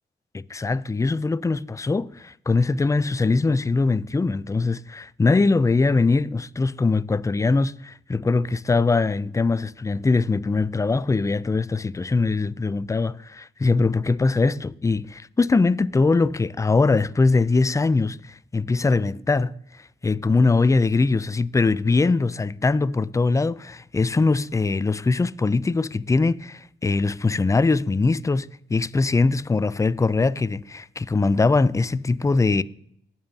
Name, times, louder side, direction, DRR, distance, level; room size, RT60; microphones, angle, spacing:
voice 1, 0.3-19.5 20.0-32.6, left 3 dB, 15° left, 0.3 m, -22 dB
20.0 x 7.1 x 2.7 m
cardioid pair, 70°, 21 cm